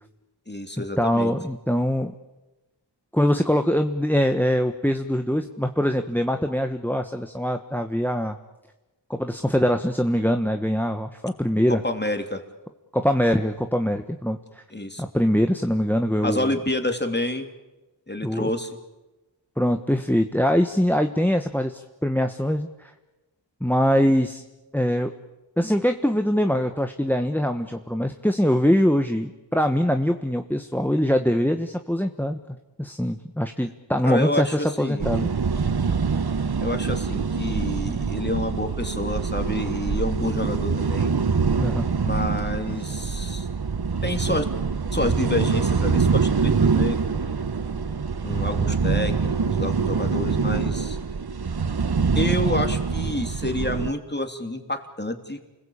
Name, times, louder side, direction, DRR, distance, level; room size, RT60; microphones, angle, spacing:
voice 1, 0.5-1.3 11.7-12.4 14.7-15.0 16.2-17.5 18.1-18.7 34.0-35.1 36.6-41.1 42.0-43.5 44.0-44.5 44.9-47.4 48.2-51.0 52.1-55.4, left 1 dB, 25° left, 6 dB, 3.2 m, -28 dB
voice 2, 1.0-2.1 3.1-8.4 9.1-11.8 12.9-14.6 15.0-16.5 18.2-18.5 19.6-22.9 23.6-24.4 24.7-25.1 25.6-32.4 32.8-35.3 41.6-41.9, equal, 5° left, 7 dB, 1.3 m, -23 dB
sound 1, 35.0-53.9, right 5 dB, 55° right, 0.9 m, -24 dB
29.5 x 21.0 x 8.8 m, 1.1 s
wide cardioid pair, 45°, 45 cm